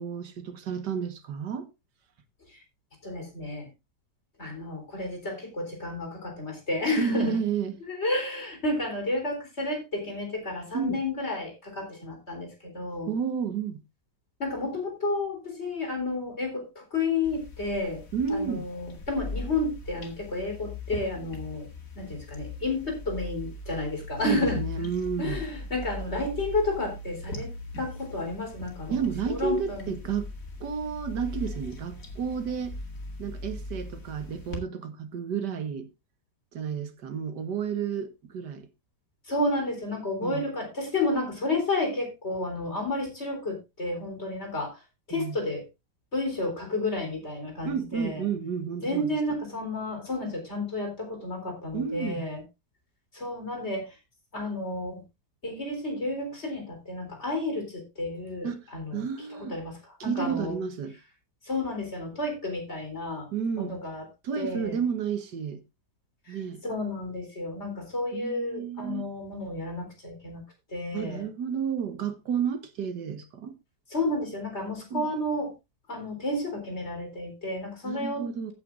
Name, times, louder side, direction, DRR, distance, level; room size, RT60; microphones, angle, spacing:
voice 1, 0.0-1.7 7.0-7.7 10.7-11.0 13.1-13.8 18.1-18.7 24.2-25.4 28.9-30.3 30.6-32.8 33.2-35.9 36.5-38.7 40.2-40.5 45.1-45.4 47.6-49.1 51.7-52.3 58.4-58.6 58.9-59.6 60.0-60.9 63.3-63.8 64.2-65.6 66.3-66.6 68.1-69.0 70.9-73.5 74.9-75.1 77.8-78.5, right 7 dB, 75° right, 1.9 m, -31 dB
voice 2, 3.0-3.7 4.4-7.4 7.8-13.1 14.4-18.0 18.3-21.7 22.0-24.9 25.2-27.5 27.8-29.0 29.3-30.0 39.2-44.8 45.1-45.6 46.1-48.2 48.8-52.4 53.1-54.0 54.3-55.0 55.4-59.0 59.3-60.6 61.4-63.3 63.6-64.0 64.4-64.8 66.3-66.4 66.6-70.4 70.7-71.3 73.9-75.5 75.9-78.3, left 2 dB, 40° left, 4.3 m, -31 dB
sound 1, 17.2-34.6, left 2 dB, 55° left, 2.6 m, -39 dB
15.0 x 9.1 x 2.5 m
omnidirectional pair, 1.8 m